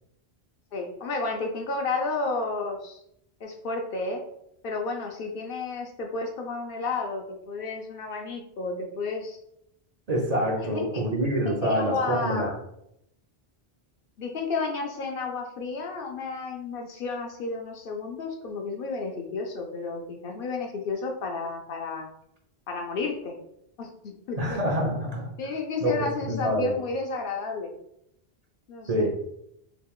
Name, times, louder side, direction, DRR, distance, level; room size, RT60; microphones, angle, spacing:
voice 1, 0.7-3.0 3.4-4.2 4.6-9.4 10.6-11.0 11.5-12.6 14.2-22.1 22.7-23.3 23.8-24.6 25.4-27.7 28.7-29.1, left 3 dB, 65° left, 2 dB, 0.7 m, -32 dB
voice 2, 10.1-12.5 24.4-25.3 25.8-26.7 28.9-29.2, equal, 45° right, -1 dB, 0.6 m, -26 dB
3.0 x 2.4 x 3.6 m, 0.76 s
omnidirectional pair, 1.1 m